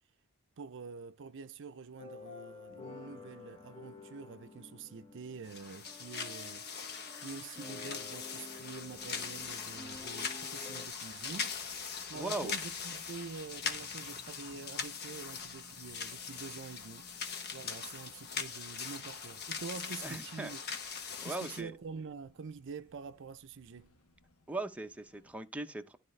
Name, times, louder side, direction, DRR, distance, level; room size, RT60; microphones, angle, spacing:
voice 1, 0.6-6.7 7.2-11.5 12.1-17.1 17.5-20.6 21.2-23.9, right 5 dB, 55° right, 0.5 m, -46 dB
sound 1, 2.0-10.9, left 3 dB, 25° left, 1.4 m, -51 dB
sound 2, 5.5-21.6, left 6 dB, 45° left, 1.1 m, -41 dB
sound 3, 8.8-25.3, left 1 dB, 85° left, 1.4 m, -63 dB
voice 2, 12.1-12.6 20.0-20.5 21.2-21.7 24.5-26.0, right 2 dB, 5° right, 0.7 m, -39 dB
12.5 x 4.3 x 3.2 m
head